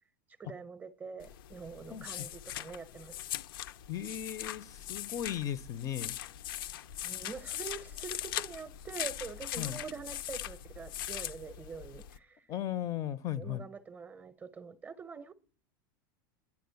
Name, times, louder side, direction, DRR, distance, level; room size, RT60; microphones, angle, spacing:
voice 1, 0.4-3.2 7.0-12.5 13.4-15.3, right 5 dB, 15° right, 0.7 m, -45 dB
sound 1, 1.2-12.2, left 12 dB, 80° left, 0.6 m, -41 dB
voice 2, 1.9-2.3 3.9-6.2 9.6-9.8 12.5-13.6, left 11 dB, 30° left, 0.5 m, -36 dB
10.5 x 9.9 x 6.9 m
supercardioid pair, 155°, 11 cm